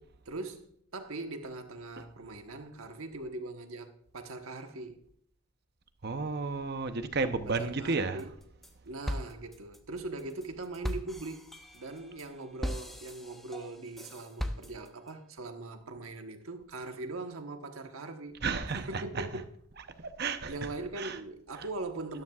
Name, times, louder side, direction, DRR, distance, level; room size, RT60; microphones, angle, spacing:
voice 1, 0.0-5.0 7.5-8.4 8.8-18.3 18.7-19.5 20.5-22.2, right 2 dB, 80° right, 1.2 m, -41 dB
voice 2, 6.0-8.2 18.4-19.3 20.0-20.5 21.0-21.2, right 4 dB, 50° right, 0.8 m, -32 dB
sound 1, 8.2-8.7 9.1-15.1, equal, ahead, 0.6 m, -39 dB
13.0 x 12.5 x 2.4 m
head